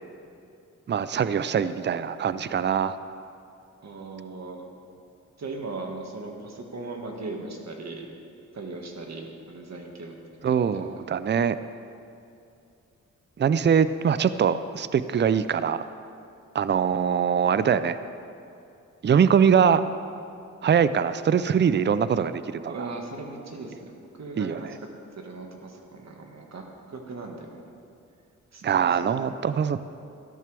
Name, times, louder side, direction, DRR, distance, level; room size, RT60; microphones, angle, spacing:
voice 1, 0.9-3.0 10.4-11.6 13.4-15.9 16.5-18.0 19.0-19.9 20.6-22.9 24.4-24.7 28.6-29.8, right 7 dB, 35° right, 14 dB, 0.5 m, -23 dB
voice 2, 3.8-4.7 5.4-8.1 8.5-10.1 10.5-10.6 22.7-24.7 25.2-26.6 26.9-27.6 28.5-29.2, right 3 dB, 55° right, 2 dB, 1.8 m, -38 dB
14.0 x 12.0 x 3.4 m, 2.5 s
cardioid pair, 55°, 31 cm